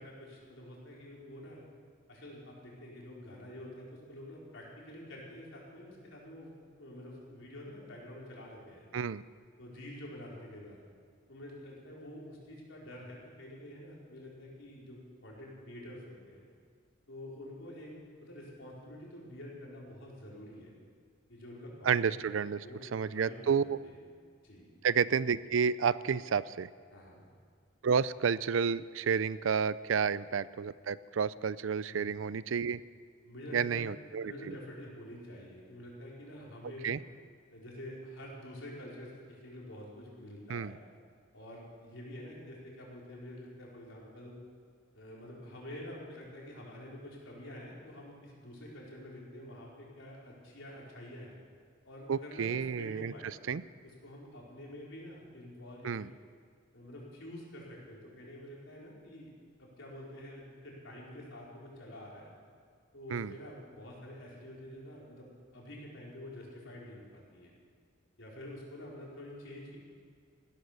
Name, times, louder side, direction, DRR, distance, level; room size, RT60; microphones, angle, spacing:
voice 1, 0.0-1.6 2.1-8.9 9.6-10.8 11.3-16.4 17.1-17.9 18.2-20.7 21.3-24.0 24.4-24.7 26.9-27.2 31.9-32.1 33.2-33.9 34.2-36.9 37.5-40.8 41.3-44.4 44.9-51.3 51.8-53.5 53.8-56.1 56.7-59.3 59.6-62.3 62.9-67.5 68.2-69.8, left 1 dB, 75° left, -4 dB, 4.7 m, -48 dB
voice 2, 21.8-22.6 22.9-23.8 24.8-26.7 27.8-32.8 33.5-34.5 36.8-37.0 40.5-40.8 52.1-53.1 53.5-53.6 55.8-56.1 63.1-63.3, right 6 dB, 80° right, 18 dB, 0.5 m, -30 dB
16.0 x 13.0 x 6.8 m, 2.1 s
head